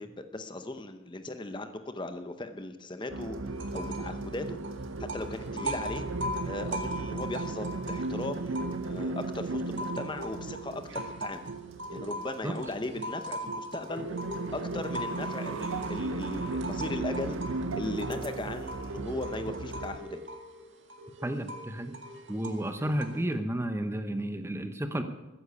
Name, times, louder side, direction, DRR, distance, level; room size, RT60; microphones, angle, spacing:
voice 1, 0.0-3.4 3.7-4.6 5.0-6.0 6.4-11.5 11.9-14.1 14.5-17.4 17.8-20.2, left 2 dB, 25° left, 8 dB, 0.8 m, -38 dB
sound 1, 3.1-20.0, right 3 dB, 85° right, 0.7 m, -36 dB
sound 2, 3.5-4.2 4.4-9.1 9.5-23.3, equal, 70° right, 1.9 m, -40 dB
voice 2, 21.2-22.0 22.3-25.0, right 1 dB, 15° right, 8 dB, 0.8 m, -32 dB
15.0 x 10.0 x 7.0 m, 1.1 s
head